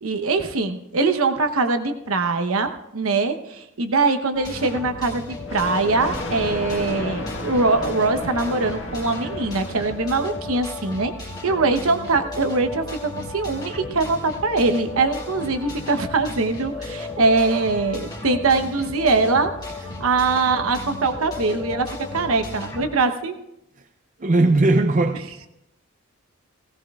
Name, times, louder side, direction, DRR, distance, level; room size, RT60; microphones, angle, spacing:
voice 1, 0.0-12.8 13.3-19.5 20.0-23.3, right 3 dB, 75° right, 0.9 m, -22 dB
sound 1, 4.4-22.8, left 3 dB, 20° left, 1.8 m, -34 dB
Thunder, 5.4-10.8, left 1 dB, 60° left, 1.7 m, -33 dB
voice 2, 24.2-25.5, right 2 dB, 35° right, 0.5 m, -19 dB
17.0 x 16.5 x 2.4 m
head